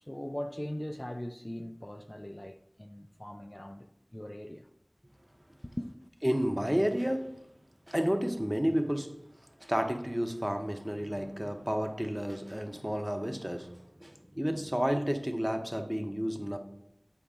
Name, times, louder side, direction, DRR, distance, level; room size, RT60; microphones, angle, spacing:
voice 1, 0.0-3.9 4.1-4.7 5.6-5.9, left 1 dB, 25° left, 0.4 m, -40 dB
voice 2, 6.2-7.3 7.9-9.2 9.6-16.6, equal, 10° right, 0.8 m, -31 dB
8.6 x 4.5 x 3.7 m
wide cardioid pair, 40°, 0 cm